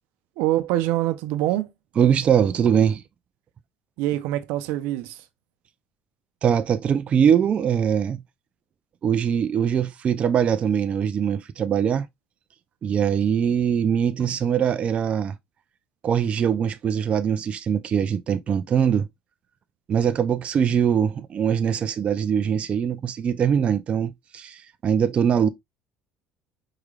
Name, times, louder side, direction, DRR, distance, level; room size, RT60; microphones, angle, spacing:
voice 1, 0.4-1.7 4.0-5.2, right 15 dB, 80° right, 0.6 m, -25 dB
voice 2, 2.0-3.0 6.4-8.2 9.0-12.1 12.8-15.3 16.0-19.1 19.9-25.5, right 8 dB, 35° right, 0.4 m, -22 dB
4.7 x 3.2 x 2.4 m
cardioid pair, 135°, 4 cm